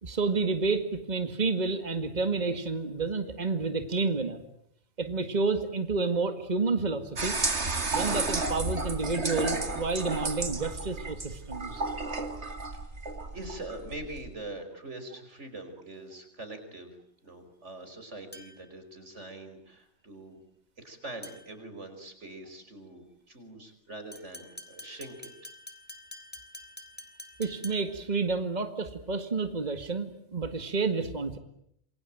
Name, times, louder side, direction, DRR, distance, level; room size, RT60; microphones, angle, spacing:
voice 1, 0.0-4.4 5.0-7.3 7.9-11.8 27.4-31.4, right 4 dB, 40° right, 8 dB, 2.0 m, -30 dB
sound 1, 7.2-14.3, right 3 dB, 70° right, 2.8 m, -32 dB
voice 2, 13.3-16.9 17.2-20.4 20.8-25.5 26.1-26.2 26.6-26.7 27.0-27.4, right 2 dB, 90° right, 8 dB, 5.5 m, -43 dB
sound 2, 18.3-18.8 21.2-21.6 24.1-28.1, left 1 dB, 10° left, 3.4 m, -47 dB
27.5 x 23.0 x 9.1 m, 0.73 s
omnidirectional pair, 1.2 m